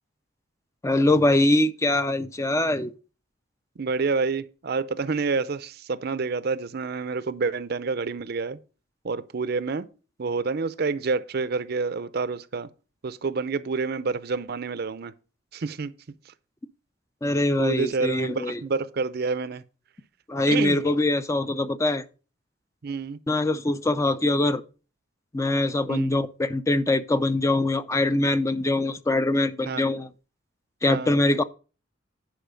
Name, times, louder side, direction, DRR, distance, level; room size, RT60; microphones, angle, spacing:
voice 1, 0.8-2.9 17.2-18.6 20.3-22.0 23.3-24.6 25.3-30.1 30.8-31.4, left 2 dB, 15° left, 0.4 m, -23 dB
voice 2, 3.8-8.6 9.0-9.9 10.2-12.7 13.0-15.1 15.5-15.9 17.6-19.6 20.5-20.8 22.8-23.2 25.9-26.1 29.7-29.9 30.9-31.2, right 4 dB, 55° right, 0.5 m, -28 dB
10.5 x 5.0 x 5.1 m
head